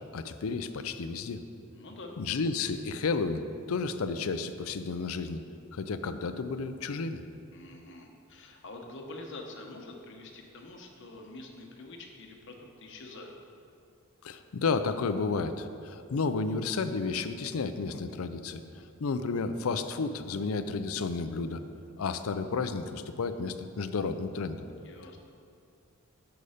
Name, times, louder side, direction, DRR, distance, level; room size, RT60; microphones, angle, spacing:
voice 1, 0.1-1.4 2.2-3.4 3.7-5.4 5.7-7.2 14.2-18.6 19.0-21.6 22.0-24.7, left 4 dB, 75° left, 10 dB, 0.5 m, -32 dB
voice 2, 1.7-2.2 7.5-13.3 24.6-25.2, left 2 dB, 55° left, 2 dB, 1.0 m, -46 dB
8.4 x 6.8 x 5.1 m, 2.5 s
head